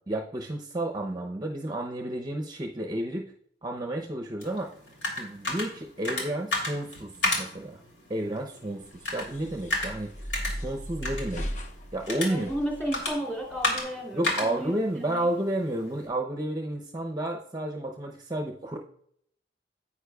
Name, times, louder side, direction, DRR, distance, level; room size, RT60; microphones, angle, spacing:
voice 1, 0.0-3.3 3.6-4.7 5.2-7.1 7.4-7.8 8.1-10.3 10.6-11.4 11.9-12.5 14.1-18.8, right 1 dB, 25° right, 3 dB, 0.6 m, -31 dB
sound 1, 4.4-16.1, left 2 dB, 85° left, 2.6 m, -34 dB
sound 2, 8.8-13.8, equal, 45° left, 0.8 m, -38 dB
voice 2, 12.3-14.7 15.1-15.3, equal, 10° left, -2 dB, 2.7 m, -33 dB
10.0 x 8.5 x 2.3 m, 0.67 s
head